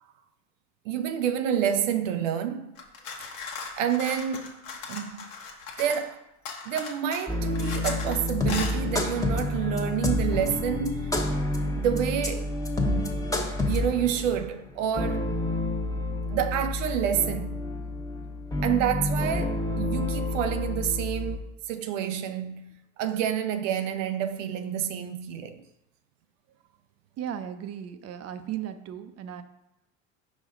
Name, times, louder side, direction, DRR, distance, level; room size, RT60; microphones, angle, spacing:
voice 1, 0.9-2.7 3.8-4.6 4.9-5.3 5.8-6.2 6.7-11.2 11.7-12.5 12.8-13.2 13.7-15.3 16.3-17.6 18.6-22.7 23.0-25.7, right 9 dB, 80° right, 0.5 m, -28 dB
sound 1, 2.8-6.1 6.5-8.2 8.5-8.8, left 5 dB, 70° left, 1.2 m, -38 dB
sound 2, 7.3-21.4, left 2 dB, 10° left, 1.0 m, -29 dB
voice 2, 27.2-29.4, right 10 dB, 40° right, 0.6 m, -36 dB
5.2 x 5.1 x 3.8 m
hypercardioid pair, 75°, 38 cm